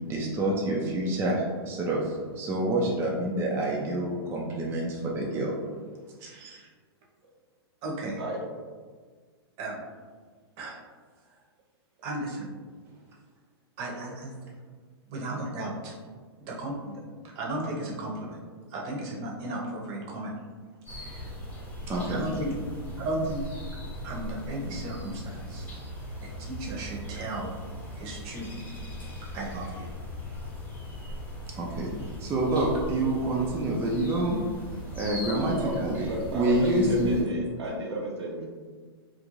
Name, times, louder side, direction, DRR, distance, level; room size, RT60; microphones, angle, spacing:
voice 1, 0.1-5.5 21.9-22.3 31.6-34.4 34.9-37.2, right 1 dB, 15° right, -2 dB, 0.4 m, -27 dB
voice 2, 6.2-6.7 7.8-8.2 9.6-9.8 10.6-10.8 12.0-12.6 13.8-14.3 15.1-15.9 16.4-17.0 17.3-18.4 18.7-20.3 20.9-21.3 22.1-22.5 23.0-23.4 24.0-25.7 26.4-27.5 27.9-28.6 29.3-29.9, right 1 dB, 40° right, -2 dB, 0.7 m, -35 dB
sound 1, 20.8-37.2, equal, 10° left, 0.8 m, -39 dB
voice 3, 36.1-38.5, right 1 dB, 85° right, -2 dB, 0.7 m, -33 dB
2.5 x 2.1 x 3.0 m, 1.5 s
hypercardioid pair, 125°, 14 cm